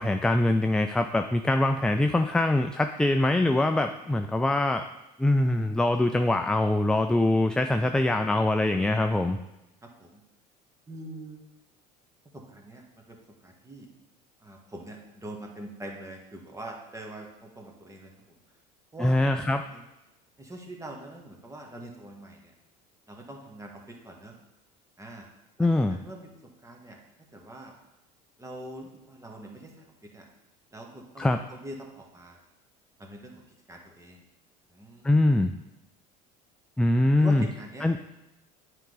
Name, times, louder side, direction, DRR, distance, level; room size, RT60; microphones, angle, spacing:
voice 1, 0.0-4.9 5.2-9.4 19.0-19.6 25.6-26.0 31.2-31.4 35.0-35.5 36.8-37.5 37.8-38.0, left 1 dB, 5° left, 6 dB, 0.4 m, -23 dB
voice 2, 9.8-10.2 10.9-11.4 12.3-13.2 13.4-13.9 14.4-18.4 18.9-19.8 20.4-22.5 23.1-24.4 25.0-25.3 25.6-26.3 26.6-27.0 27.3-27.7 28.4-30.3 30.7-32.4 33.0-33.4 33.7-34.2 34.7-35.3 37.2-37.9, right 1 dB, 15° right, 1 dB, 1.8 m, -44 dB
9.1 x 4.9 x 4.0 m, 0.93 s
hypercardioid pair, 80°, 20 cm